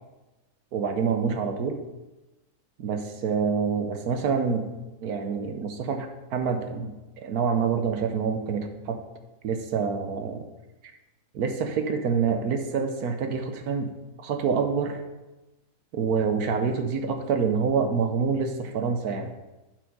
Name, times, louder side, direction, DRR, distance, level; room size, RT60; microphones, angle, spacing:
voice 1, 0.7-1.8 2.8-4.7 5.0-6.9 7.2-9.0 9.4-10.4 11.3-13.9 14.2-15.0 15.9-19.3, right 5 dB, 70° right, 6 dB, 1.2 m, -26 dB
7.0 x 6.0 x 5.3 m, 1.1 s
omnidirectional pair, 1.7 m